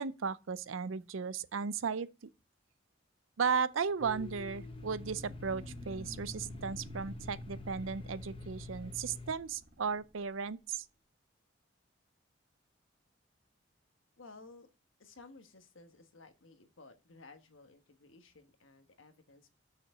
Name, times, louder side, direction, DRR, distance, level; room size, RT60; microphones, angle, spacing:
voice 1, 0.0-2.1 3.4-10.8, right 5 dB, 85° right, 0.5 m, -35 dB
Domestic sounds home sounds, 4.0-9.3, left 3 dB, 25° left, 0.8 m, -47 dB
sound 1, 4.0-10.2, right 1 dB, 50° right, 1.9 m, -51 dB
voice 2, 14.2-14.7 15.0-19.6, left 3 dB, 85° left, 1.3 m, -56 dB
6.8 x 5.8 x 6.5 m
head